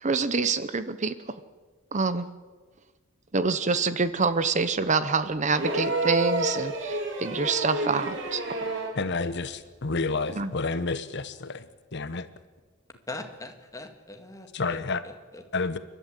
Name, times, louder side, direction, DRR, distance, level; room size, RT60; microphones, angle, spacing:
voice 1, 0.0-1.1 1.9-2.3 3.3-8.4 10.4-10.5, right 4 dB, 35° right, 13 dB, 0.8 m, -26 dB
sound 1, 5.5-9.1 10.4-10.5, right 2 dB, 65° right, 3.5 m, -29 dB
voice 2, 8.9-12.3 14.5-15.0 15.5-15.8, left 3 dB, 60° left, 12 dB, 1.0 m, -30 dB
voice 3, 13.1-15.4, left 2 dB, 15° left, 5 dB, 2.1 m, -41 dB
30.0 x 12.0 x 8.2 m, 1.4 s
head